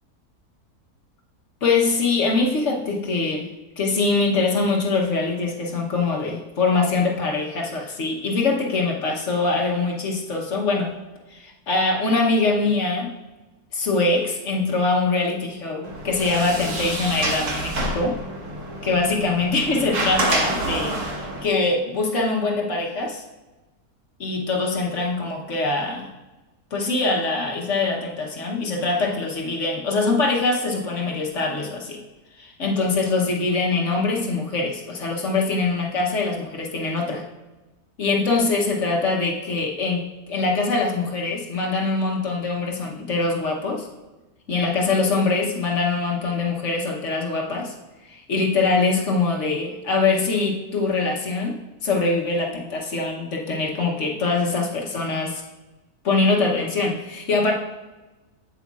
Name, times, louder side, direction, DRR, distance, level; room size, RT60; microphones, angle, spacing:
voice 1, 1.6-3.5 3.8-10.9 11.3-13.2 13.7-18.2 18.8-23.2 24.2-26.1 26.7-32.0 32.4-37.2 38.0-43.9 44.5-47.7 48.1-55.4 56.0-57.5, left 3 dB, 55° left, -1 dB, 1.3 m, -23 dB
Sliding door, 15.8-21.4, right 1 dB, 60° right, 1.5 m, -27 dB
8.3 x 7.7 x 2.4 m, 1.1 s
omnidirectional pair, 1.6 m